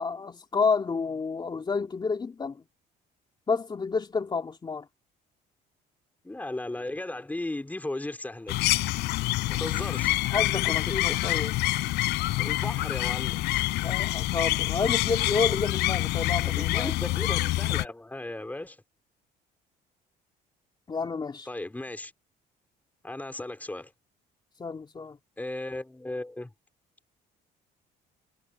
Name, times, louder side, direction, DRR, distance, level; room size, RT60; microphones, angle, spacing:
voice 1, 0.0-2.6 3.5-4.9 10.3-11.5 13.8-16.9 20.9-21.5 24.6-25.2, left 4 dB, 25° left, 2.9 m, -30 dB
voice 2, 6.2-8.7 9.5-10.3 10.9-11.3 12.4-13.7 16.4-18.8 21.5-22.1 23.0-23.9 25.4-26.5, left 2 dB, 10° left, 3.9 m, -36 dB
sound 1, 8.5-17.9, left 18 dB, 85° left, 5.6 m, -27 dB
cardioid pair, 110°, 17 cm